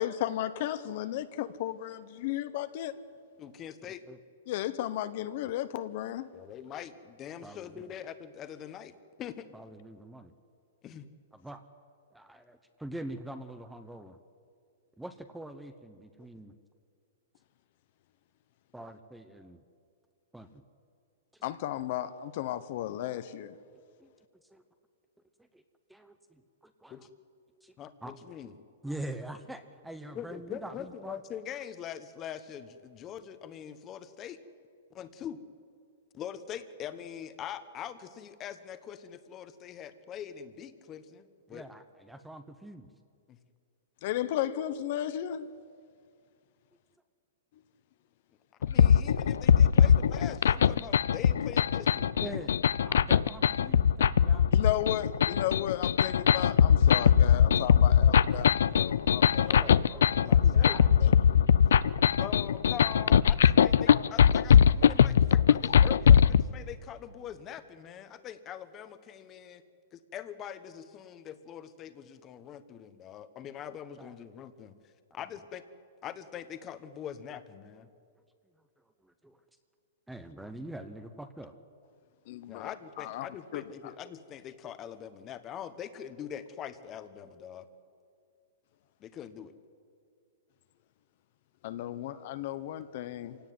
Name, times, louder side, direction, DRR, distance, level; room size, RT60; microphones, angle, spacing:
voice 1, 0.0-2.9 4.5-6.3 21.4-23.6 44.0-45.5 54.5-59.6 60.2-60.3 61.0-61.1 82.3-82.7 83.0-83.3 83.5-83.9 91.6-93.4, left 12 dB, 40° left, 0.8 m, -34 dB
voice 2, 3.4-4.0 6.3-8.9 9.2-9.5 10.8-11.1 26.9-27.1 27.8-28.5 30.1-34.4 34.9-35.4 36.1-41.7 43.3-43.4 48.7-52.1 59.4-61.5 62.2-69.6 69.9-74.8 75.1-75.6 76.0-77.9 82.5-87.7 89.0-89.5, left 9 dB, 20° left, 1.1 m, -43 dB
voice 3, 7.4-7.9 9.5-10.3 11.3-11.6 12.1-14.2 15.0-16.5 18.7-19.6 20.3-20.6 21.3-21.4 23.7-24.1 24.5-24.6 25.5-25.6 25.9-27.1 27.6-27.7 28.0-28.1 28.8-31.2 41.5-42.9 52.2-54.5 59.5-59.7 60.4-61.0 74.0-74.1 75.1-75.2 78.8-79.4 80.1-81.6, right 1 dB, 5° right, 0.8 m, -44 dB
sound 1, 48.6-66.4, left 8 dB, 80° left, 0.6 m, -21 dB
26.5 x 17.5 x 9.5 m
hypercardioid pair, 170°, 0 cm